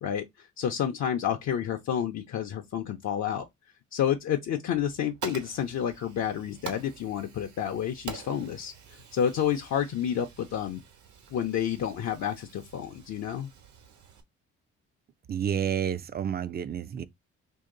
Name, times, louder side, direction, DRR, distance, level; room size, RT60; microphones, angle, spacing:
voice 1, 0.0-3.5 3.9-8.7 9.1-10.8 11.3-13.5, left 9 dB, 65° left, 0.6 m, -30 dB
Fire, 4.8-14.2, right 6 dB, 75° right, 1.2 m, -46 dB
voice 2, 15.3-17.0, right 8 dB, 35° right, 0.4 m, -30 dB
2.9 x 2.8 x 3.7 m
cardioid pair, 90°, 30 cm